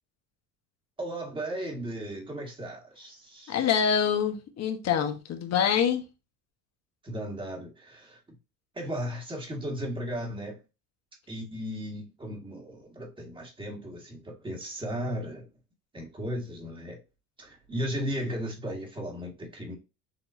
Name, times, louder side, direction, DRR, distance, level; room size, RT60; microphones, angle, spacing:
voice 1, 1.0-3.7 7.0-8.2 8.7-10.6 11.3-15.5 15.9-17.0 17.4-19.8, equal, 15° right, 1.7 m, -36 dB
voice 2, 3.5-6.0, left 8 dB, 45° left, 1.2 m, -25 dB
6.9 x 2.9 x 2.6 m
cardioid pair, 130°, 36 cm